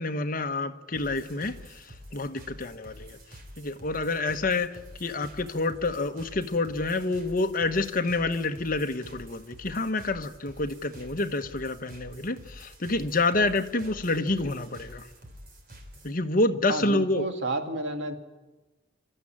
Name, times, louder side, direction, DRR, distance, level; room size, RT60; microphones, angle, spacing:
voice 1, 0.0-1.5 2.1-3.2 3.6-15.0 16.0-17.2, left 2 dB, 45° left, 1.1 m, -28 dB
sound 1, 0.9-16.2, equal, 50° right, 3.7 m, -48 dB
voice 2, 16.7-18.2, right 1 dB, 65° right, 2.2 m, -31 dB
28.0 x 13.0 x 8.7 m
head